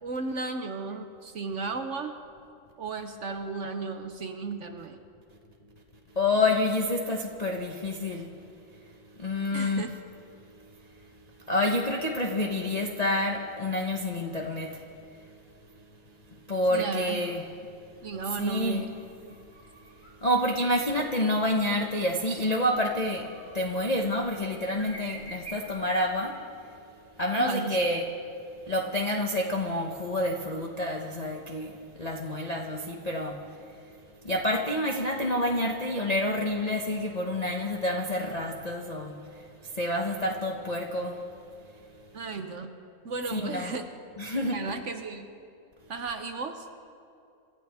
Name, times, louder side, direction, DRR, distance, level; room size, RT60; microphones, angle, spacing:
voice 1, 0.0-2.2 2.8-5.0 9.5-9.9 16.7-17.2 18.0-18.9 19.2-19.4 27.3-27.8 42.1-42.7 43.0-43.8 44.5-45.3 45.9-46.7, right 4 dB, 65° right, 6 dB, 0.7 m, -34 dB
voice 2, 6.2-8.3 9.2-9.8 11.5-14.8 16.5-17.4 18.4-18.8 20.2-23.3 23.5-26.3 27.2-28.1 28.7-31.7 32.0-33.4 34.2-39.1 39.6-41.2 43.3-43.7 44.2-44.6, left 1 dB, 45° left, 0 dB, 0.5 m, -28 dB
sound 1, 18.2-26.2, right 2 dB, 5° left, 1.8 m, -50 dB
27.5 x 13.5 x 3.5 m, 2.5 s
omnidirectional pair, 2.3 m